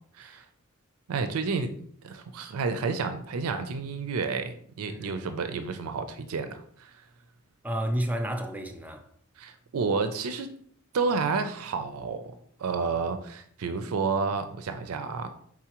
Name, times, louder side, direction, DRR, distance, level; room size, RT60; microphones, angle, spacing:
voice 1, 1.1-6.9 9.4-10.5 10.9-12.3 12.6-15.3, right 4 dB, 90° right, 0.4 m, -30 dB
voice 2, 4.9-5.3 7.6-9.1, equal, 5° right, 0.4 m, -31 dB
4.8 x 3.8 x 2.9 m
head